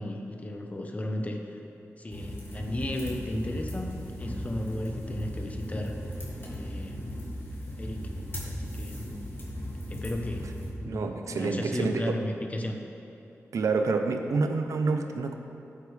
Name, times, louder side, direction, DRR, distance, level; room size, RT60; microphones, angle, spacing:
voice 1, 0.0-1.6 2.0-3.9 4.2-6.0 6.5-7.1 7.8-8.1 8.4-9.1 9.9-10.4 10.8-12.8, left 1 dB, 25° left, 3 dB, 1.0 m, -34 dB
sound 1, 2.1-10.7, equal, 45° left, 2.5 m, -37 dB
voice 2, 10.8-12.2 13.5-15.4, right 4 dB, 80° right, 5 dB, 0.8 m, -28 dB
15.0 x 8.5 x 3.4 m, 2.7 s
wide cardioid pair, 90°, 5 cm